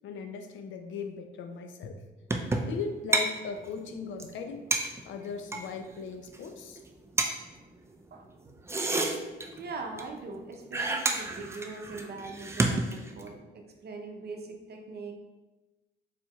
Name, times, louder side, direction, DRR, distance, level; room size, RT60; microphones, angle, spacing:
voice 1, 0.0-2.0 2.6-4.6 5.0-6.8, left 5 dB, 75° left, 6 dB, 0.6 m, -38 dB
sound 1, 2.3-2.8 3.1-3.3 3.6-3.7 3.9-4.0 4.2-4.3 4.7-5.7 6.2-6.5 6.8-6.9 7.2-7.3 8.5-9.7 10.0-10.1 10.3-10.4 10.7-13.3, right 2 dB, 15° right, 0.4 m, -29 dB
voice 2, 9.6-15.1, right 3 dB, 55° right, 3 dB, 0.7 m, -41 dB
4.5 x 4.2 x 2.3 m, 1.2 s
cardioid pair, 90°, 20 cm